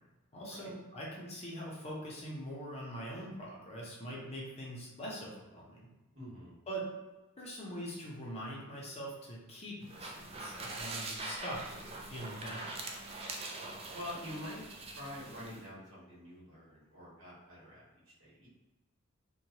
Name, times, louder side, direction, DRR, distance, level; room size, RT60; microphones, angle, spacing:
voice 1, 0.3-5.9 6.7-6.9 7.4-12.7, equal, 30° left, -4 dB, 0.6 m, -43 dB
voice 2, 6.1-6.5 13.9-14.6 15.0-17.8 18.2-18.5, left 1 dB, 65° right, -7 dB, 1.3 m, -46 dB
sound 1, 9.8-15.6, right 2 dB, 30° right, 0.3 m, -43 dB
3.0 x 2.2 x 2.8 m, 1.1 s
head